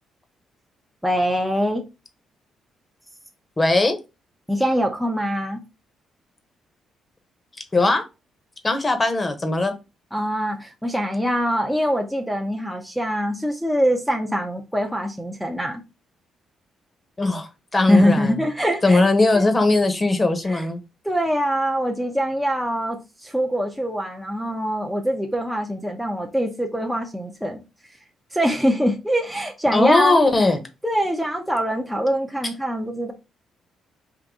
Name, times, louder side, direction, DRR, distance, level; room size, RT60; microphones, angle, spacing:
voice 1, 1.0-1.8 4.5-5.6 10.1-15.8 17.9-19.0 19.3-19.4 20.4-20.7 21.0-27.6 28.3-30.5 30.8-33.1, equal, ahead, 0.7 m, -23 dB
voice 2, 3.6-4.0 7.7-8.0 8.6-9.7 17.2-18.4 18.8-20.8 29.7-30.6, left 2 dB, 25° left, 1.0 m, -19 dB
3.9 x 2.6 x 3.6 m
cardioid pair, 90°, 0 cm